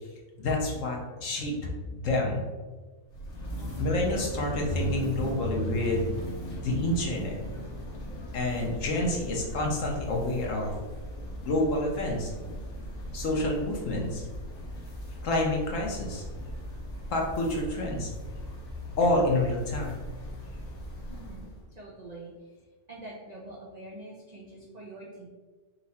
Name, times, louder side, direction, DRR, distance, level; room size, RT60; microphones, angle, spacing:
voice 1, 0.4-1.5 1.9-2.4 3.8-6.1 6.6-7.3 8.3-10.7 11.4-12.3 13.1-14.3 15.2-16.2 17.1-18.1 19.0-20.0, left 1 dB, 60° left, 0 dB, 1.1 m, -28 dB
sound 1, 3.1-21.6, equal, 80° left, 1.6 m, -38 dB
voice 2, 21.1-22.5 22.9-25.3, right 2 dB, 60° right, -3 dB, 0.4 m, -45 dB
4.1 x 2.5 x 4.1 m, 1.3 s
omnidirectional pair, 1.6 m